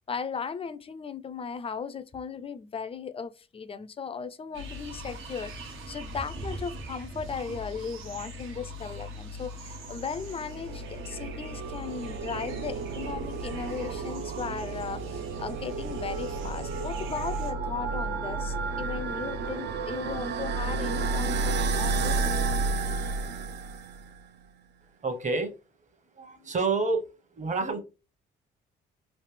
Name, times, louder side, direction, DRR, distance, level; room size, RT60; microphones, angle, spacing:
voice 1, 0.1-22.2, left 6 dB, 30° left, 0.4 m, -37 dB
sound 1, 4.5-17.5, equal, 85° right, 1.2 m, -41 dB
sound 2, 10.0-24.1, right 4 dB, 60° right, 0.4 m, -32 dB
voice 2, 25.0-25.5 26.2-27.8, right 3 dB, 40° right, 1.0 m, -29 dB
3.2 x 2.8 x 3.2 m
cardioid pair, 90°, 20 cm